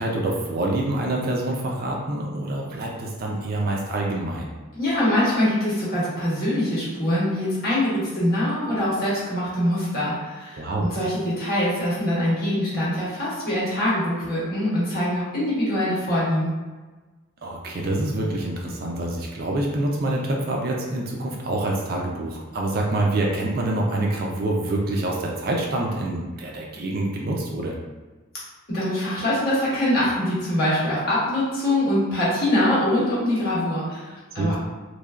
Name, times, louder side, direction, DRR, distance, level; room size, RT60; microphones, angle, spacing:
voice 1, 0.0-4.5 10.5-10.9 17.4-27.7 34.4-34.6, right 1 dB, 45° right, -1 dB, 0.4 m, -26 dB
voice 2, 4.7-16.5 28.7-34.1 34.3-34.6, left 1 dB, 45° left, -9 dB, 1.2 m, -23 dB
3.2 x 2.2 x 2.4 m, 1.3 s
head